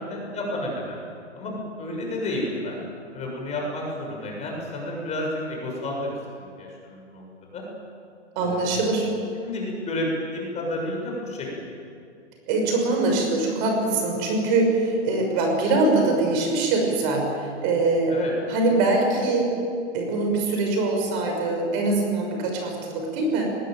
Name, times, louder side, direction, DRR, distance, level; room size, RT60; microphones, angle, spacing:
voice 1, 0.1-1.0 1.3-2.8 3.1-7.2 7.5-7.6 8.4-8.8 9.4-11.7 18.1-18.3, left 1 dB, 20° left, -1 dB, 6.8 m, -31 dB
voice 2, 8.3-9.1 12.5-18.2 18.5-19.5 19.9-23.5, right 2 dB, 40° right, 2 dB, 6.2 m, -23 dB
20.5 x 20.5 x 9.2 m, 2.4 s
hypercardioid pair, 140°, 36 cm